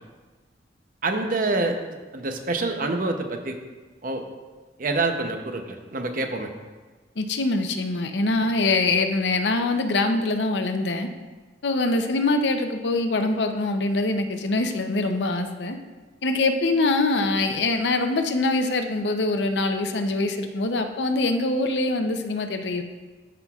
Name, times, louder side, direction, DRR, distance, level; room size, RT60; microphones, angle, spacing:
voice 1, 1.0-1.8 2.1-3.6 4.0-4.2 4.8-6.5 8.4-8.5, right 2 dB, 50° right, 5 dB, 0.7 m, -26 dB
voice 2, 7.2-11.1 11.6-15.8 16.2-22.8, left 2 dB, 80° left, 6 dB, 0.7 m, -24 dB
13.0 x 5.8 x 2.4 m, 1.3 s
head